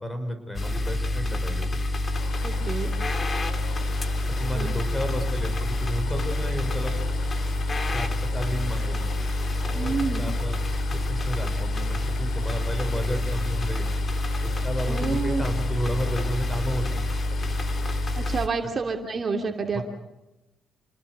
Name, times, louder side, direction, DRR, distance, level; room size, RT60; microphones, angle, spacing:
voice 1, 0.0-1.8 4.4-7.1 7.9-8.1 8.3-9.1 9.6-10.6 10.9-13.9 14.4-17.0 18.6-18.7 19.7-19.8, equal, 15° left, 7 dB, 6.4 m, -32 dB
sound 1, 0.5-18.5, left 1 dB, 35° left, 2.3 m, -27 dB
Chatter / Stream, 2.1-18.4, left 7 dB, 90° left, 2.7 m, -43 dB
voice 2, 2.4-2.9 4.5-4.7 9.7-10.2 14.9-15.4 18.2-19.8, right 5 dB, 40° right, 3 dB, 2.7 m, -29 dB
29.0 x 20.0 x 6.8 m, 1.0 s
cardioid pair, 90°, 0 cm